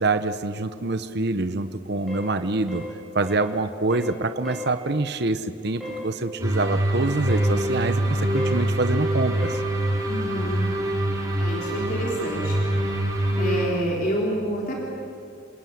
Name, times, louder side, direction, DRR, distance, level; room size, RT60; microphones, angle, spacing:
voice 1, 0.0-2.8 3.1-9.6, right 2 dB, 55° right, 9 dB, 1.0 m, -25 dB
sound 1, 2.1-2.3 2.7-2.9 3.3-3.5 3.9-4.2 4.4-4.7 5.8-6.1 7.3-7.5 8.4-8.6 9.4-9.6, equal, ahead, 7.9 m, -35 dB
sound 2, 6.4-13.6, right 1 dB, 15° right, 5.6 m, -24 dB
voice 2, 10.1-10.7 11.4-12.6 13.4-14.8, equal, 45° left, -2 dB, 3.9 m, -28 dB
29.5 x 21.0 x 9.4 m, 2.4 s
head